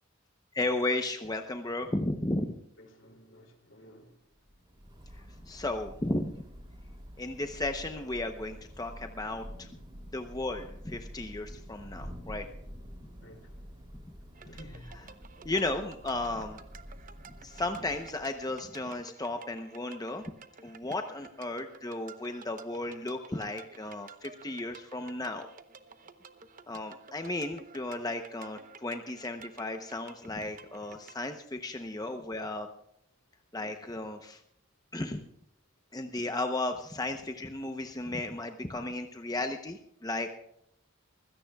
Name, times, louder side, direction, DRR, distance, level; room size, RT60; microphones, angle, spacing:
voice 1, 0.5-2.6 5.1-6.4 7.2-9.7 10.1-12.5 14.0-14.1 14.9-15.0 15.4-16.6 17.4-20.2 20.6-25.5 26.7-32.7 33.5-34.4 34.9-35.2 35.9-40.3, left 2 dB, 20° left, 0.8 m, -34 dB
voice 2, 2.8-4.2 13.2-13.6 14.4-15.1, equal, 65° left, 2.9 m, -52 dB
Thunder / Rain, 4.3-18.7, equal, 25° right, 3.1 m, -48 dB
sound 1, 14.4-31.2, right 5 dB, 40° right, 0.9 m, -53 dB
25.0 x 16.5 x 2.4 m
head